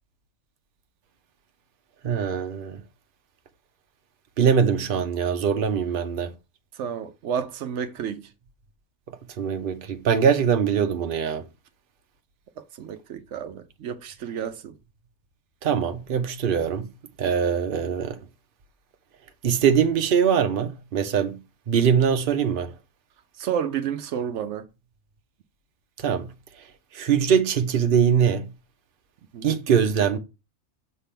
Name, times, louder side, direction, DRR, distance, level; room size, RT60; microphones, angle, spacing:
voice 1, 2.0-2.8 4.4-6.3 9.1-11.4 15.6-16.9 17.2-18.2 19.4-21.4 21.7-22.7 26.0-26.3 26.9-28.5 29.4-30.2, right 7 dB, 55° right, 0.9 m, -22 dB
voice 2, 6.8-8.3 12.8-14.7 23.4-24.6 29.3-29.5, right 8 dB, 80° right, 1.0 m, -30 dB
6.6 x 3.4 x 5.7 m
omnidirectional pair, 1.2 m